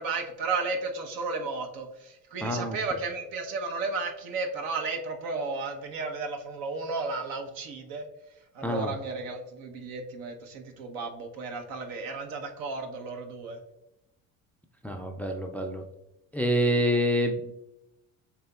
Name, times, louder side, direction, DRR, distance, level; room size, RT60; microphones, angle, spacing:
voice 1, 0.0-8.1 8.5-13.6, right 3 dB, 65° right, 4 dB, 1.0 m, -33 dB
voice 2, 2.4-2.8 8.6-8.9 14.8-15.8 16.3-17.5, equal, 5° left, 4 dB, 0.4 m, -27 dB
7.1 x 3.0 x 2.3 m, 0.87 s
supercardioid pair, 80°, 38 cm